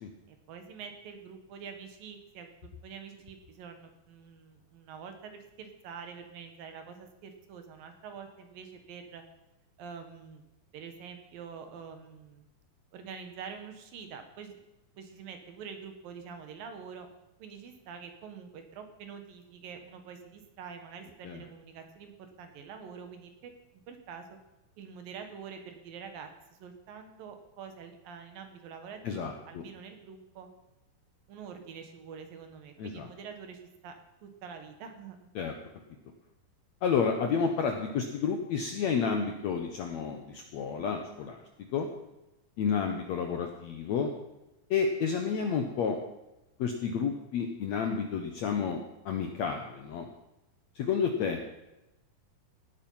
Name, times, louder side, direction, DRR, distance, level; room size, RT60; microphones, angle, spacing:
voice 1, 0.3-9.2 9.8-10.4 10.7-12.5 12.9-14.6 14.9-17.1 17.4-23.5 23.9-24.4 24.8-30.5 31.3-35.2, right 6 dB, 70° right, 6 dB, 3.0 m, -46 dB
voice 2, 29.0-29.6 32.8-33.1 35.4-35.5 36.8-41.4 41.7-41.9 42.6-44.1 44.7-46.0 46.6-50.1 50.8-51.4, left 6 dB, 70° left, 4 dB, 1.7 m, -30 dB
17.5 x 9.1 x 5.6 m, 0.94 s
omnidirectional pair, 4.3 m